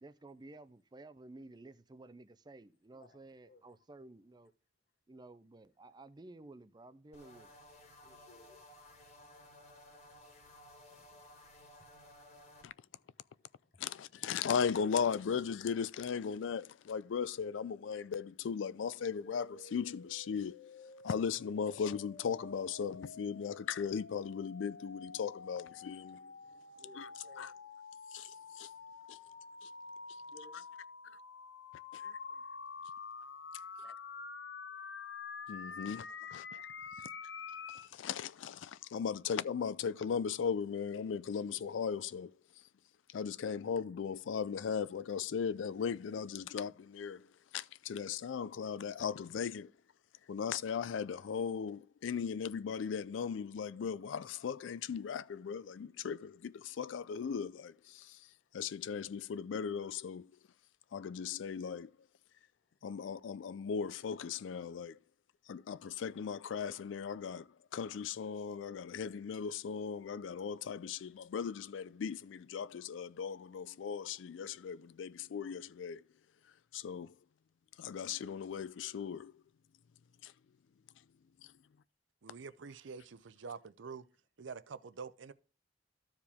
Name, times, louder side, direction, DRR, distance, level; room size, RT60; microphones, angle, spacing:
voice 1, 0.0-4.5 5.1-7.5, right 2 dB, 20° right, 0.4 m, -54 dB
sound 1, 7.1-12.7, left 1 dB, 35° left, 1.9 m, -57 dB
voice 2, 7.7-11.3 11.8-11.9 12.7-14.3 25.7-25.8 26.3-27.7 28.2-30.6 50.1-50.2 58.2-58.3 62.7-62.8 83.4-83.5 83.8-84.0, left 3 dB, 50° left, 1.2 m, -65 dB
voice 3, 13.8-20.6 21.0-26.3 27.0-27.1 27.4-27.5 28.1-28.7 29.1-29.2 29.6-29.7 31.9-32.2 33.8-33.9 35.5-36.6 37.7-42.3 43.1-47.3 47.5-49.7 50.3-58.3 58.5-60.3 60.9-61.9 62.8-65.0 65.5-76.0 76.7-77.1 77.8-79.3 80.2-80.3 81.4-81.5, left 6 dB, 85° left, 0.4 m, -37 dB
sound 2, 19.0-37.9, left 5 dB, 70° left, 0.8 m, -48 dB
voice 4, 82.2-84.0 84.4-85.3, right 5 dB, 85° right, 0.6 m, -46 dB
13.0 x 4.9 x 3.4 m
head